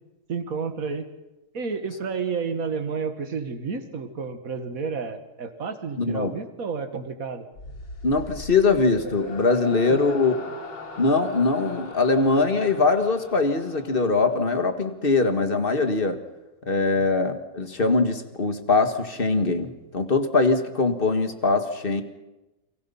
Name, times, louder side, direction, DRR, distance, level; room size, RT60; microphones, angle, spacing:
voice 1, 0.3-1.1 1.5-7.5 9.9-10.0, right 5 dB, 40° right, 7 dB, 2.2 m, -31 dB
voice 2, 6.0-6.3 8.0-10.3 11.0-16.2 16.7-22.0, left 3 dB, 30° left, 7 dB, 1.7 m, -22 dB
sound 1, 7.5-14.9, left 2 dB, 60° left, 3.9 m, -39 dB
30.0 x 23.5 x 5.7 m, 1.0 s
omnidirectional pair, 2.3 m